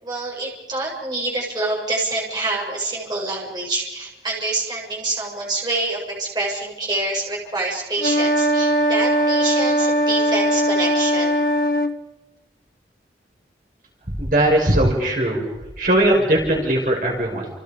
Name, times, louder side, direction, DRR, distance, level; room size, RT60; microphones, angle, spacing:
voice 1, 0.0-11.4, right 2 dB, 25° right, -2 dB, 6.8 m, -26 dB
sound 1, 8.0-11.9, equal, 50° left, 1.6 m, -19 dB
voice 2, 14.1-15.4 15.8-17.5, right 1 dB, 50° right, -1 dB, 5.9 m, -19 dB
30.0 x 29.5 x 5.3 m, 1.0 s
head